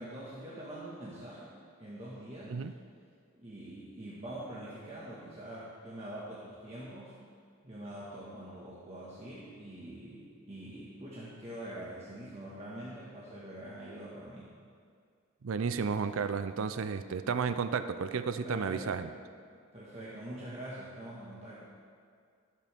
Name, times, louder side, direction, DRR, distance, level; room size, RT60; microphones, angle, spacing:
voice 1, 0.0-1.5 1.8-2.6 3.3-7.2 7.6-14.5 18.4-19.0 19.5-21.6, right 1 dB, 30° right, -8 dB, 1.7 m, -44 dB
voice 2, 15.4-19.1, right 5 dB, 80° right, 11 dB, 0.5 m, -32 dB
20.0 x 8.4 x 3.6 m, 2.2 s
head